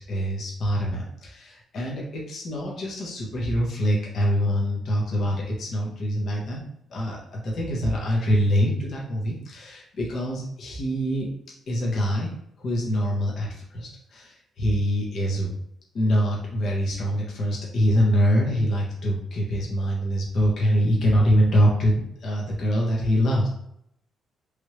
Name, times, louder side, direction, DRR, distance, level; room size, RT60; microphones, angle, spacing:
voice 1, 0.1-6.6 6.9-11.3 11.7-12.3 12.6-15.5 15.9-23.5, equal, 60° left, -3 dB, 1.1 m, -24 dB
3.3 x 2.6 x 3.2 m, 0.74 s
cardioid pair, 90°, 0 cm